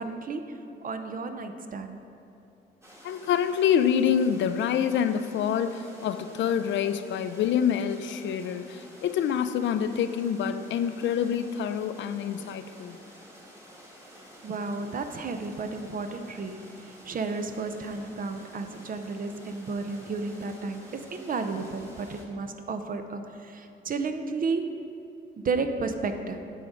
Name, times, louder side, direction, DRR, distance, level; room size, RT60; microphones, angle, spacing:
voice 1, 0.0-2.0 14.4-24.8 25.4-26.4, right 4 dB, 45° right, 7 dB, 0.6 m, -33 dB
sound 1, 2.8-22.3, equal, 15° right, 1.4 m, -50 dB
voice 2, 3.0-13.0, left 8 dB, 75° left, 11 dB, 0.4 m, -26 dB
9.2 x 3.7 x 6.1 m, 2.9 s
cardioid pair, 95°, 19 cm